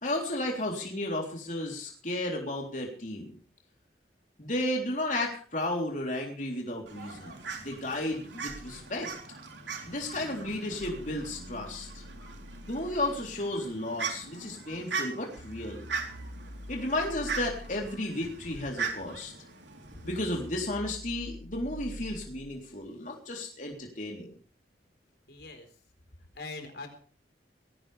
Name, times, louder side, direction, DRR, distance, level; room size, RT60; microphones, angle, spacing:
voice 1, 0.0-3.3 4.4-9.1 9.9-12.0 12.7-15.8 16.7-19.3 20.0-24.3, left 1 dB, 45° left, 0 dB, 3.6 m, -33 dB
Fowl, 6.9-20.5, right 5 dB, 90° right, 3.7 m, -40 dB
sound 1, 8.5-13.6 15.4-22.8, equal, 85° left, 1.8 m, -47 dB
voice 2, 25.3-25.7 26.3-26.9, left 3 dB, 65° left, 5 dB, 4.3 m, -41 dB
20.5 x 17.0 x 3.4 m, 0.41 s
head